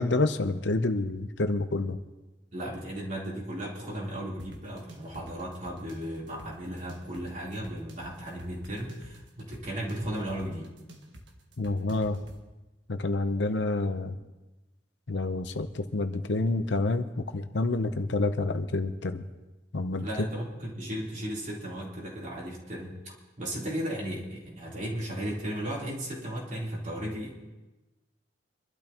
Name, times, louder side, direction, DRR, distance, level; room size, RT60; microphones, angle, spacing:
voice 1, 0.0-2.0 11.6-12.2 12.9-14.2 15.1-19.2 19.7-20.3, left 2 dB, 75° left, 9 dB, 0.8 m, -28 dB
voice 2, 2.5-10.7 20.0-27.5, right 1 dB, 45° right, -5 dB, 3.8 m, -35 dB
sound 1, 4.4-12.4, right 1 dB, 85° right, 1.7 m, -49 dB
25.5 x 12.0 x 3.0 m, 1.1 s
head